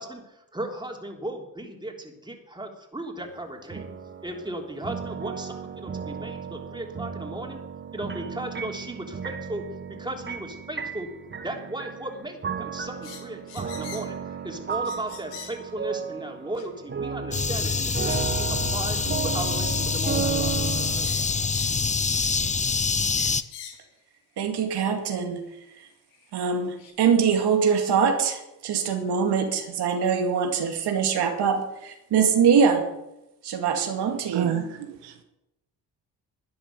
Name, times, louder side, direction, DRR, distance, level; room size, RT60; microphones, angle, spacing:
voice 1, 0.0-3.9 4.2-7.6 7.9-9.6 9.9-11.1 11.4-19.0 19.2-21.3, right 1 dB, 10° right, 1 dB, 3.3 m, -36 dB
sound 1, 3.3-21.1, right 6 dB, 25° right, 1.3 m, -34 dB
sound 2, 13.0-14.2 14.7-15.6 16.6-16.7 17.7-18.3 18.6-18.8 19.3-19.6 20.0-20.2 20.5-20.6 21.0-21.8 22.1-22.4 23.1-23.9 24.9-25.0 26.1-26.2 26.8-26.9, left 8 dB, 85° left, 2.1 m, -43 dB
sound 3, 17.3-23.4, left 4 dB, 20° left, 0.6 m, -26 dB
voice 2, 24.4-25.4 25.8-25.9 26.3-32.9 33.4-34.5, right 6 dB, 70° right, 4 dB, 2.2 m, -23 dB
voice 3, 34.3-35.2, right 9 dB, 90° right, 6 dB, 1.4 m, -29 dB
12.0 x 10.0 x 6.9 m, 0.90 s
supercardioid pair, 70°, 42 cm